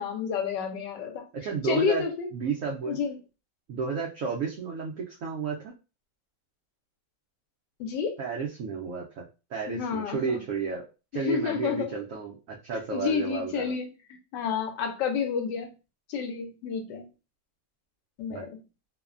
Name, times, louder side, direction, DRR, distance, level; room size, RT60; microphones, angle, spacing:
voice 1, 0.0-1.2 1.6-2.3 2.9-3.2 7.8-8.2 9.7-10.4 11.2-11.9 12.9-13.9 14.3-15.7 16.1-17.0 18.2-18.5, left 6 dB, 80° left, 5 dB, 1.2 m, -29 dB
voice 2, 1.3-2.0 2.3-3.0 3.7-5.7 8.2-9.2 9.5-10.8 11.1-13.7 18.3-18.5, right 5 dB, 80° right, -2 dB, 0.7 m, -32 dB
3.0 x 2.1 x 2.4 m, 0.30 s
omnidirectional pair, 1.9 m